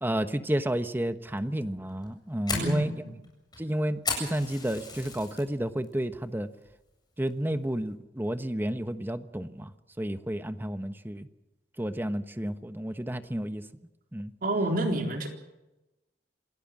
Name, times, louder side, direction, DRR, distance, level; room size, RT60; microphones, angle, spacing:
voice 1, 0.0-2.9 3.6-6.5 7.2-9.7 10.0-11.3 11.8-13.6 14.1-14.3, right 1 dB, 10° right, 10 dB, 1.1 m, -31 dB
Fire, 1.9-5.4 5.8-6.2 6.6-6.7 7.3-7.6, left 4 dB, 25° left, 7.8 m, -35 dB
voice 2, 2.5-3.2 14.4-15.3, right 1 dB, 55° right, 3 dB, 3.9 m, -29 dB
27.5 x 16.5 x 7.5 m, 1.0 s
head